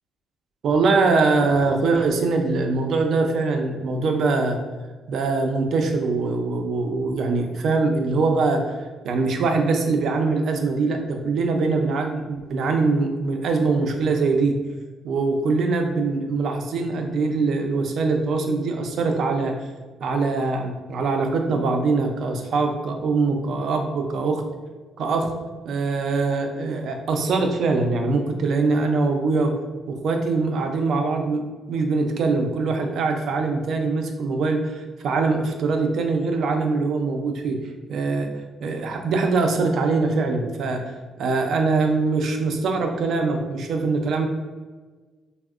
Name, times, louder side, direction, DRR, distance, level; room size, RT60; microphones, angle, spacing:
voice 1, 0.6-4.6 5.1-14.6 15.0-19.6 20.0-24.4 25.0-25.3 25.7-29.5 29.9-37.6 37.9-38.3 38.6-40.8 41.2-44.3, right 3 dB, 70° right, 4 dB, 0.4 m, -23 dB
3.4 x 2.0 x 2.3 m, 1.3 s
cardioid pair, 90°, 0 cm